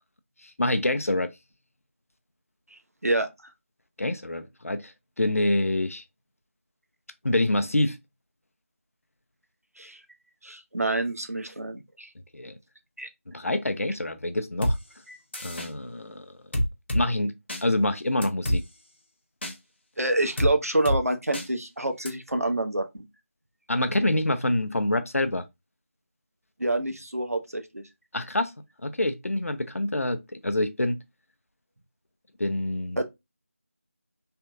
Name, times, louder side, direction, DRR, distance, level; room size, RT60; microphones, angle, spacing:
voice 1, 0.4-1.3 4.0-4.9 5.2-6.0 7.2-8.0 12.3-12.6 13.3-14.7 15.4-16.3 16.9-17.3 17.6-18.6 23.7-25.4 28.1-28.5 28.8-31.0 32.4-33.0, left 1 dB, 70° left, 0.6 m, -26 dB
voice 2, 2.7-3.5 9.8-10.0 10.4-12.1 13.0-13.1 15.1-15.2 20.0-23.1 26.6-27.8 33.0-33.1, right 2 dB, 90° right, 0.9 m, -27 dB
sound 1, 14.6-14.8 15.3-15.7 16.5-17.0 17.5-17.6 18.2-18.6 19.4-19.5 20.4-20.5 20.9-21.0 21.3-21.5 22.1-22.2, equal, 50° left, 0.9 m, -26 dB
3.3 x 3.0 x 2.3 m
figure-of-eight pair, 170°, 8 cm